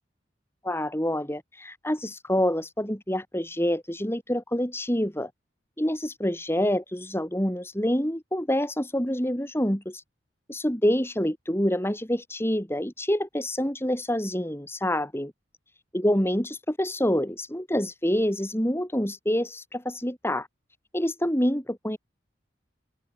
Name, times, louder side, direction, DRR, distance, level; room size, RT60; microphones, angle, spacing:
voice 1, 0.6-5.3 5.8-10.0 10.5-15.3 15.9-20.5 20.9-22.0, equal, 15° left, 5.6 m, -27 dB
open air
head